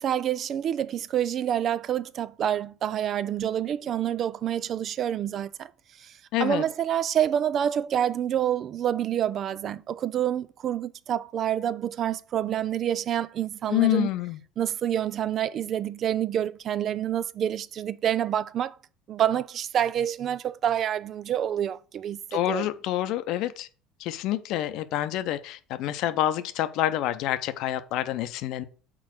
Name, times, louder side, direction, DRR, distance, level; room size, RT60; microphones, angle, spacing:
voice 1, 0.0-5.7 6.0-6.1 6.4-14.1 14.6-18.7 19.1-22.7, right 10 dB, 50° right, 0.4 m, -27 dB
voice 2, 6.3-6.6 13.7-14.4 22.3-23.7 24.0-28.6, left 13 dB, 65° left, 0.7 m, -27 dB
6.1 x 4.1 x 6.3 m
hypercardioid pair, 70°, 0 cm